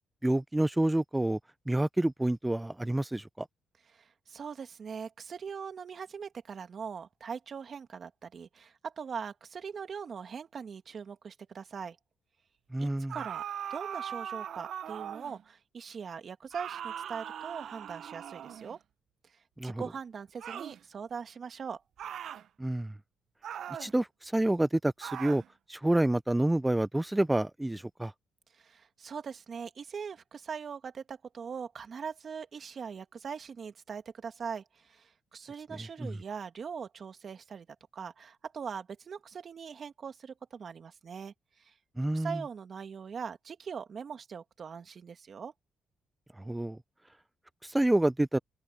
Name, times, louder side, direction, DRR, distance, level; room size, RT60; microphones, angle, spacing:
voice 1, 0.2-1.4 1.7-3.5 12.7-13.2 19.6-19.8 22.6-22.9 23.8-25.4 25.7-28.1 36.0-36.2 42.0-42.4 46.4-46.8 47.7-48.4, right 1 dB, 10° right, 0.6 m, -28 dB
voice 2, 3.9-12.0 12.8-13.4 13.7-18.8 19.6-21.8 28.5-37.7 37.9-41.7 42.1-45.5, right 6 dB, 50° right, 2.3 m, -41 dB
sound 1, 13.1-15.4 16.5-18.8 20.4-20.8 22.0-22.5 23.4-23.9 25.0-25.5, right 9 dB, 65° right, 0.7 m, -40 dB
cardioid pair, 90°, 0 cm